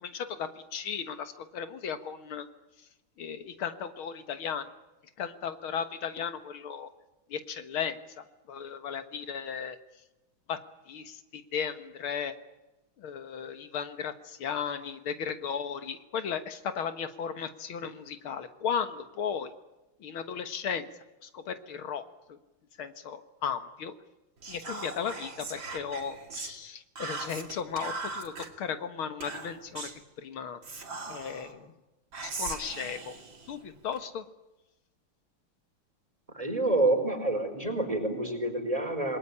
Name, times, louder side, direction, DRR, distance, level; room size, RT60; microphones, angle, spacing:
voice 1, 0.0-2.5 3.2-4.7 5.2-6.9 7.3-8.0 8.5-9.8 10.5-10.6 10.9-12.3 13.0-19.5 20.0-20.8 21.3-22.0 22.8-23.9 24.5-28.3 28.6-29.9 30.2-30.6 31.1-31.7 32.2-33.1 33.5-34.2, left 7 dB, 80° left, 10 dB, 2.3 m, -35 dB
Whispering, 24.4-26.5 27.0-28.5 29.2-30.0 30.6-31.5 32.1-34.0, right 3 dB, 60° right, 3.8 m, -39 dB
voice 2, 36.3-39.2, right 2 dB, 15° right, 5 dB, 4.9 m, -28 dB
28.0 x 20.5 x 9.9 m, 1.0 s
omnidirectional pair, 2.3 m